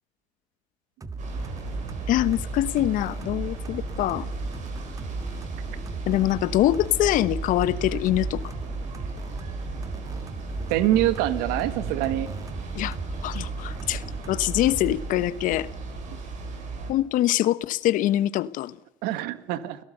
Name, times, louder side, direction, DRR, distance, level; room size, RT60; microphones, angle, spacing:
sound 1, 1.0-15.1, right 2 dB, 20° right, 1.8 m, -36 dB
sound 2, 1.2-16.9, right 4 dB, 55° right, 6.8 m, -37 dB
voice 1, 2.1-4.3 6.1-8.4 12.7-13.0 13.2-15.7 16.9-18.8, left 14 dB, 60° left, 1.1 m, -24 dB
voice 2, 10.7-12.3 19.0-19.8, right 13 dB, 75° right, 1.8 m, -25 dB
29.5 x 17.0 x 6.8 m
supercardioid pair, 90°, 15 cm